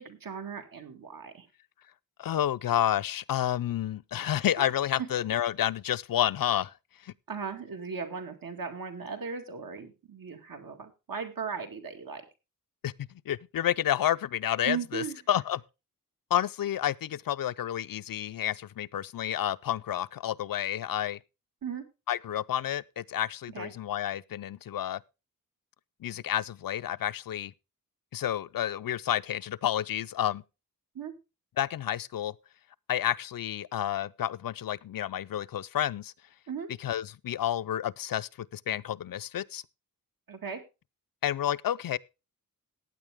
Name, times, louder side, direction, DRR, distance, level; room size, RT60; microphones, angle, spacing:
voice 1, 0.0-1.5 5.0-5.1 7.3-12.2 14.6-15.2 21.6-21.8 23.5-23.7 30.9-31.1 36.5-36.7 40.3-40.6, right 6 dB, 75° right, 2.2 m, -37 dB
voice 2, 2.2-6.7 7.0-7.1 12.8-15.6 16.3-21.2 22.1-25.0 26.0-27.5 28.1-30.4 31.6-32.3 32.9-36.1 36.8-39.6 41.2-42.0, left 11 dB, 75° left, 0.5 m, -30 dB
15.5 x 9.3 x 3.5 m
wide cardioid pair, 170°, 34 cm